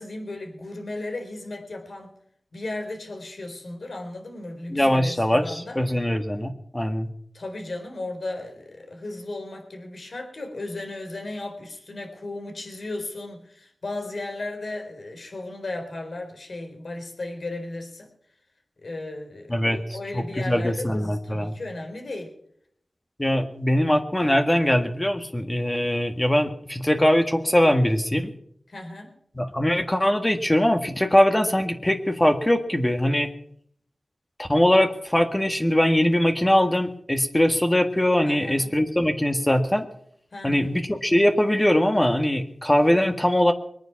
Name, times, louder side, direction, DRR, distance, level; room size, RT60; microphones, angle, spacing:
voice 1, 0.0-2.1 2.5-5.8 7.3-18.1 18.8-22.3 28.7-29.1 38.2-38.7 40.3-40.7, left 2 dB, 65° left, 4 dB, 3.7 m, -35 dB
voice 2, 4.7-7.1 19.5-19.8 20.1-21.6 23.2-28.3 29.3-33.3 34.4-39.9 40.4-43.5, left 1 dB, 15° left, 5 dB, 1.6 m, -21 dB
22.5 x 9.4 x 5.9 m, 0.68 s
wide cardioid pair, 70°, 0 cm